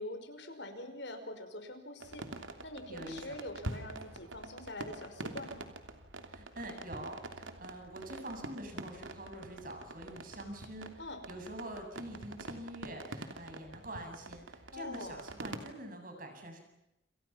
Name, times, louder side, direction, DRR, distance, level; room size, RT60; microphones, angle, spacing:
voice 1, 0.0-2.2 2.6-5.6 11.0-11.2 14.7-15.2, left 1 dB, 65° left, 7 dB, 5.4 m, -44 dB
sound 1, 2.0-15.7, right 2 dB, 80° right, 3.0 m, -46 dB
voice 2, 2.9-3.4 6.2-10.9 11.3-16.6, right 1 dB, 45° right, 5 dB, 7.5 m, -45 dB
30.0 x 29.0 x 5.9 m, 0.90 s
head